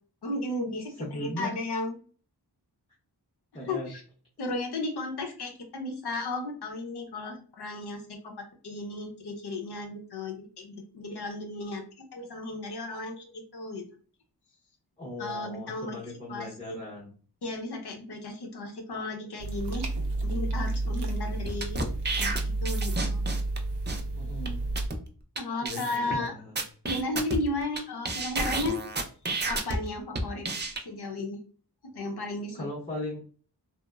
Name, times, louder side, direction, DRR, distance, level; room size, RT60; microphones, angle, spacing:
voice 1, 0.2-2.0 3.6-4.0 4.4-8.3 8.6-13.8 15.2-16.0 16.3-16.8 17.4-19.9 20.2-21.8 22.2-23.3 25.4-26.3 26.8-28.8 29.5-30.5 30.9-31.4 31.9-32.7, left 2 dB, 70° left, 2 dB, 0.7 m, -34 dB
voice 2, 1.0-1.5 3.5-3.9 15.0-17.1 24.1-24.6 25.6-26.6 32.5-33.2, left 1 dB, 15° left, -6 dB, 0.7 m, -38 dB
sound 1, 19.4-24.9, right 2 dB, 85° right, 0.5 m, -31 dB
sound 2, 21.5-23.6 23.9-24.0 24.5-24.6 24.8-25.0 25.4-25.5 25.6-26.2 26.6-27.8 28.0-29.8 30.1-30.8, right 3 dB, 30° right, 0.4 m, -31 dB
2.9 x 2.0 x 2.3 m, 0.41 s
wide cardioid pair, 90°, 40 cm